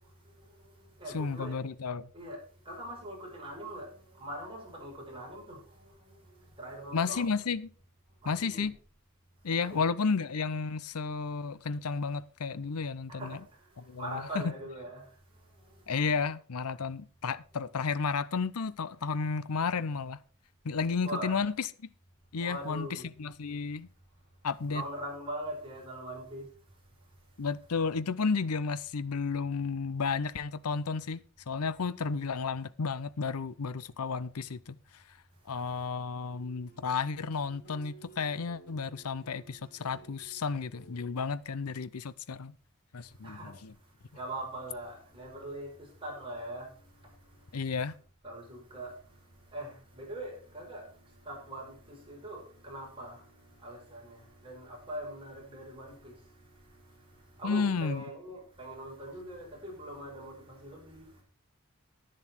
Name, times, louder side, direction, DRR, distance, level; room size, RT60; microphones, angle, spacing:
voice 1, 0.0-1.6 2.1-7.3 8.2-8.7 9.6-9.8 13.1-15.1 15.4-16.1 21.0-21.4 22.4-23.1 24.7-26.5 43.2-43.7 44.1-47.9 48.2-61.2, right 1 dB, 25° right, 5.8 m, -43 dB
voice 2, 1.1-2.1 6.9-7.7 8.3-8.7 9.4-13.4 13.9-14.5 15.9-20.2 20.6-21.5 22.3-23.9 24.4-24.8 27.4-34.8 35.5-42.5 42.9-43.7 47.5-47.9 57.4-58.0, left 5 dB, 80° left, 0.7 m, -32 dB
sound 1, 36.3-41.3, right 4 dB, 45° left, 6.2 m, -56 dB
11.0 x 10.5 x 4.5 m
head